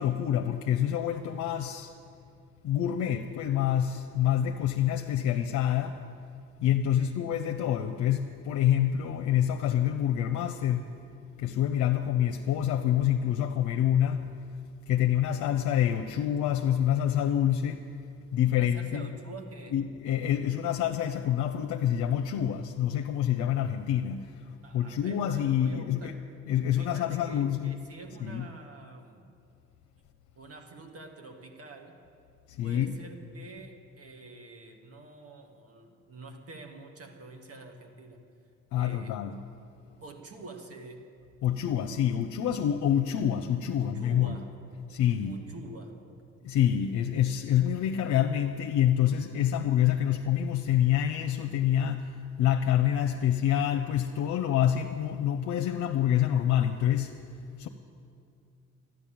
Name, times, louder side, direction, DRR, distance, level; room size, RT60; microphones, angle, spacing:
voice 1, 0.0-1.9 2.6-6.0 6.6-10.9 11.4-14.3 14.9-17.8 18.3-19.1 19.7-26.1 26.5-27.8 28.2-28.5 32.5-32.9 38.7-39.3 41.4-44.4 44.9-45.4 46.4-57.2 57.6-57.7, left 10 dB, 80° left, 4 dB, 0.7 m, -27 dB
voice 2, 18.5-19.8 24.6-26.2 26.8-29.3 30.4-32.0 32.6-38.2 38.8-39.2 40.0-41.1 43.8-44.6 45.2-46.0, right 3 dB, 50° right, 4 dB, 1.8 m, -47 dB
12.5 x 10.5 x 8.7 m, 2.4 s
cardioid pair, 90°, 30 cm